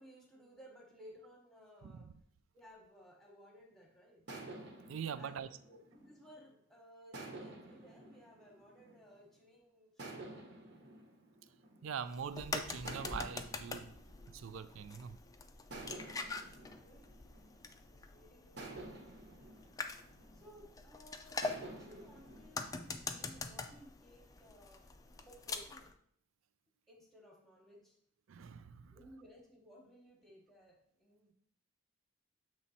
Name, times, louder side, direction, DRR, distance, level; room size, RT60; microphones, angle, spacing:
voice 1, 0.0-2.1 2.5-4.5 5.2-10.4 15.8-17.1 17.9-18.6 20.3-24.9 25.2-25.9 26.9-28.0 28.9-31.3, equal, ahead, 1.1 m, -59 dB
voice 2, 1.8-2.1 4.9-5.5 11.8-14.0 14.3-15.2 28.3-28.9, right 7 dB, 80° right, 0.4 m, -43 dB
sound 1, 4.3-6.5 7.1-9.4 10.0-12.3 12.9-15.1 15.7-18.0 18.6-20.8 21.4-23.3, right 2 dB, 60° right, 1.1 m, -51 dB
cracking egg on pan, 12.1-25.9, left 4 dB, 15° left, 0.3 m, -45 dB
7.3 x 3.1 x 4.1 m
head